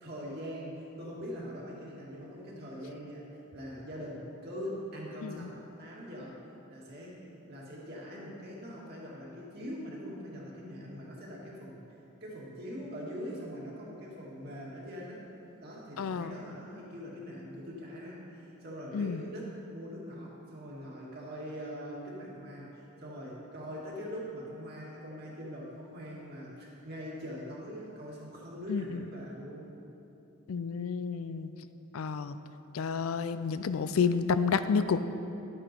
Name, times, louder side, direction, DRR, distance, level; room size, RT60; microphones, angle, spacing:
voice 1, 0.0-3.2 3.5-6.4 6.7-7.2 7.5-11.8 12.2-15.2 15.6-29.7, equal, 45° right, -4 dB, 2.1 m, -42 dB
voice 2, 16.0-16.3 18.9-19.2 28.7-29.0 30.5-31.5 31.9-32.4 32.7-35.1, left 5 dB, 75° left, 12 dB, 0.4 m, -30 dB
11.0 x 8.8 x 4.4 m, 2.9 s
head